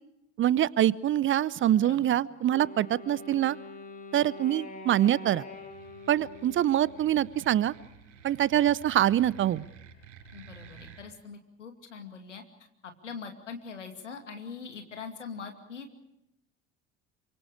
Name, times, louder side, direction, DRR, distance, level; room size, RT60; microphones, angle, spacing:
voice 1, 0.4-3.6 4.1-5.4 6.1-7.7 8.2-9.6, right 12 dB, 35° right, 21 dB, 0.7 m, -25 dB
voice 2, 1.8-2.2 10.3-12.4 12.8-15.9, left 5 dB, 80° left, 5 dB, 2.6 m, -42 dB
Wind instrument woodwind instrument, 2.5-7.5, left 2 dB, 25° left, 4.8 m, -45 dB
sound 1, 5.4-11.1, right 6 dB, 80° right, 6.6 m, -52 dB
28.0 x 25.0 x 4.9 m, 0.83 s
figure-of-eight pair, 60°, 36 cm